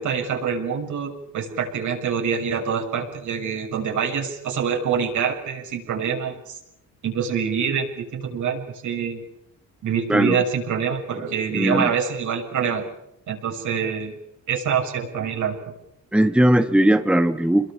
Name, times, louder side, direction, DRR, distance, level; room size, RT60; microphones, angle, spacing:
voice 1, 0.0-6.6 7.0-9.2 9.8-12.8 13.3-14.1 14.5-15.6, right 7 dB, 75° right, 2 dB, 6.7 m, -25 dB
voice 2, 11.5-11.9 16.1-17.7, right 1 dB, 5° right, 8 dB, 1.4 m, -18 dB
29.0 x 22.0 x 7.1 m, 0.80 s
cardioid pair, 90°, 30 cm